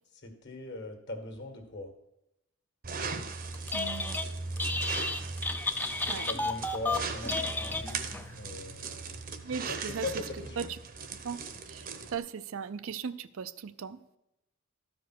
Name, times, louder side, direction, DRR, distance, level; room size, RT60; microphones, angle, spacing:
voice 1, 0.2-1.9 6.3-9.2 9.7-10.7, left 2 dB, 50° left, 5 dB, 1.7 m, -40 dB
sound 1, 2.8-12.2, right 4 dB, 40° right, 0.8 m, -39 dB
Telephone, 3.5-4.3 4.6-8.3, left 2 dB, 10° left, 0.4 m, -32 dB
voice 2, 3.7-4.2 6.1-6.3 9.4-10.1 10.6-10.7 11.2-11.4 11.7-14.0, right 6 dB, 65° right, 14 dB, 0.4 m, -37 dB
13.0 x 5.1 x 6.0 m, 0.87 s
head